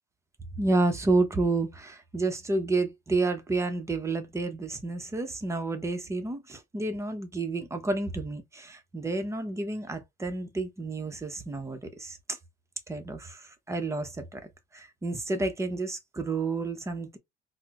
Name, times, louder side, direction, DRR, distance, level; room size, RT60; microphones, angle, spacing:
voice 1, 0.6-12.4 12.9-17.2, right 3 dB, 15° right, 0.8 m, -30 dB
4.3 x 2.1 x 2.4 m
cardioid pair, 110°, 17 cm